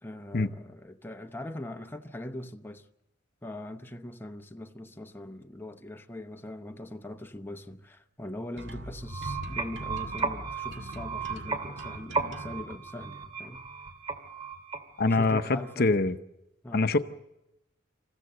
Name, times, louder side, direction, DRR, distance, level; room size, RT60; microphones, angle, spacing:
voice 1, 0.0-2.9 3.4-13.6 15.0-15.9 16.6-16.9, left 1 dB, 10° left, 0.8 m, -41 dB
sound 1, 8.6-12.6, right 1 dB, 65° right, 1.8 m, -44 dB
sound 2, 9.0-15.8, right 4 dB, 25° right, 2.1 m, -35 dB
voice 2, 15.0-16.2 16.7-17.0, left 3 dB, 50° left, 0.8 m, -24 dB
27.5 x 15.0 x 7.8 m
head